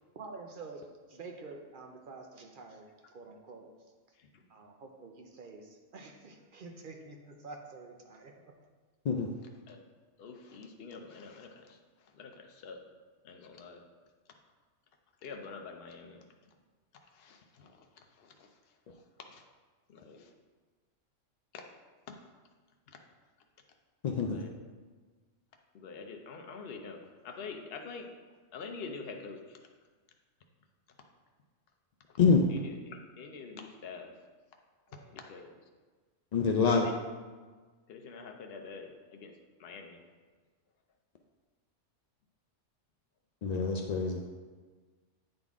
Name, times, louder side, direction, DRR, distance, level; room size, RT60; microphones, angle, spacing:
voice 1, 0.2-3.7 4.5-8.6 34.9-35.1, right 3 dB, 55° right, 3 dB, 0.7 m, -48 dB
voice 2, 10.2-11.8 12.1-12.8 13.2-13.8 15.2-16.2 17.1-17.8 18.2-18.5 19.3-19.4 19.9-20.3 21.5-21.6 22.9-23.0 24.3-24.5 25.7-28.1 28.5-29.6 32.5-34.1 35.1-35.6 36.7-36.9 37.9-39.3 39.6-40.0, left 4 dB, 60° left, 3 dB, 0.9 m, -46 dB
voice 3, 24.0-24.4 32.2-32.4 36.3-36.9 43.4-44.2, left 5 dB, 75° left, 2 dB, 0.3 m, -26 dB
8.7 x 3.9 x 3.5 m, 1.4 s
omnidirectional pair, 1.3 m